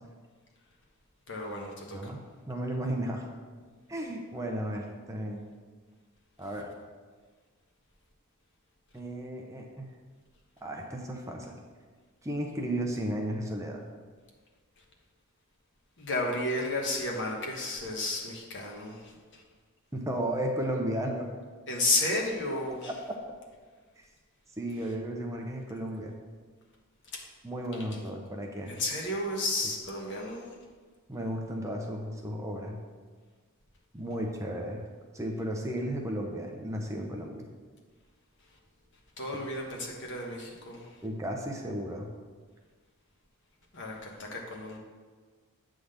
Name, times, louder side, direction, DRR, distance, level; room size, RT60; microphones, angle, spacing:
voice 1, 1.3-2.1 16.0-19.4 21.7-22.9 27.1-27.2 28.7-30.5 39.2-40.9 43.7-44.8, left 2 dB, 55° left, 0 dB, 1.3 m, -32 dB
voice 2, 1.9-3.3 3.9-5.4 6.4-6.7 8.9-9.9 10.6-11.6 12.2-13.8 19.9-21.3 24.6-26.1 27.4-28.7 31.1-32.8 33.9-34.8 35.1-37.5 41.0-42.1, right 1 dB, 15° right, 1 dB, 0.7 m, -34 dB
8.3 x 3.8 x 6.6 m, 1.5 s
head